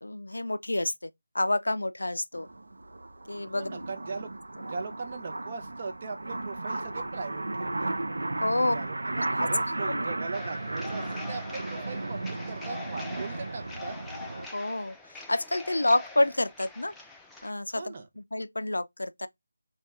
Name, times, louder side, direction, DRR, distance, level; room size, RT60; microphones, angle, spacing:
voice 1, 0.0-2.5 3.3-3.8 8.4-8.9 9.4-9.5 9.9-10.0 14.5-16.9 17.4-19.3, left 1 dB, 85° left, 0.3 m, -29 dB
sound 1, 2.3-14.5, right 2 dB, 80° right, 0.5 m, -34 dB
voice 2, 3.5-4.3 4.7-7.9 8.6-13.9 17.7-18.1, right 4 dB, 40° right, 0.6 m, -39 dB
sound 2, 10.3-17.5, left 3 dB, 5° left, 0.3 m, -44 dB
2.8 x 2.2 x 3.4 m
figure-of-eight pair, 165°, 0 cm